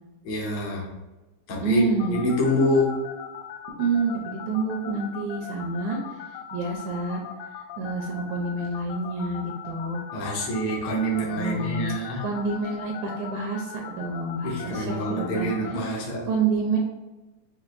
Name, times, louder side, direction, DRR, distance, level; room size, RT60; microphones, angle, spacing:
voice 1, 0.2-0.9 1.5-3.0 10.1-12.2 14.4-16.3, equal, 65° left, -3 dB, 1.3 m, -26 dB
voice 2, 1.6-2.2 3.7-6.0 6.5-7.2 7.8-10.0 11.4-11.9 12.2-15.5 15.8-16.8, right 3 dB, 75° right, -1 dB, 2.0 m, -28 dB
sound 1, 2.0-15.7, left 9 dB, 85° left, 2.1 m, -38 dB
6.1 x 2.5 x 2.5 m, 1.1 s
omnidirectional pair, 3.5 m